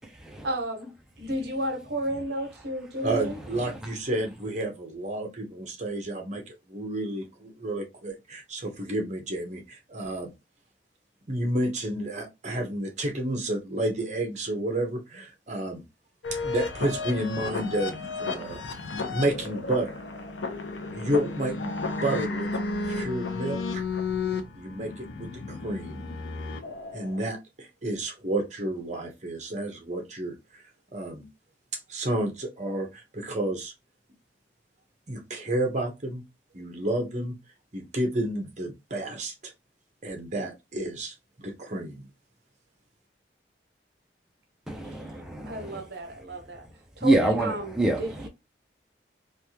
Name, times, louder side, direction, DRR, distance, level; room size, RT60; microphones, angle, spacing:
voice 1, 0.4-3.4 44.8-45.0 45.4-46.7 47.0-48.3, equal, 65° right, 0.8 m, -33 dB
voice 2, 3.0-10.3 11.3-15.8 16.3-20.0 20.9-22.5 22.8-23.8 24.5-26.1 26.9-30.6 30.9-31.3 31.9-33.7 35.1-36.2 36.5-37.4 37.7-39.5 40.0-42.1, right 1 dB, 40° right, 0.9 m, -31 dB
sound 1, 16.2-27.2, left 4 dB, 90° left, 0.6 m, -33 dB
voice 3, 44.7-45.8 47.0-48.0, right 2 dB, 5° right, 0.5 m, -26 dB
3.3 x 2.4 x 2.8 m
head